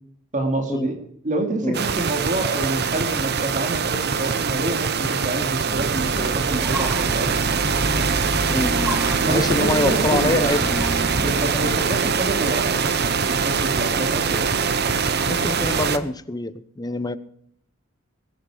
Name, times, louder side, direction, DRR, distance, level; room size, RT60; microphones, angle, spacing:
voice 1, 0.3-0.9 1.2-7.5 9.2-10.5 11.1-14.5, right 2 dB, 40° right, 4 dB, 2.6 m, -27 dB
sound 1, 1.7-16.0, right 5 dB, 55° right, 1.0 m, -23 dB
sound 2, 5.7-11.7, equal, 10° right, 2.4 m, -29 dB
voice 2, 9.3-10.6 11.2-11.3 15.3-17.2, left 2 dB, 20° left, 13 dB, 0.9 m, -25 dB
21.5 x 10.0 x 5.0 m, 0.66 s
head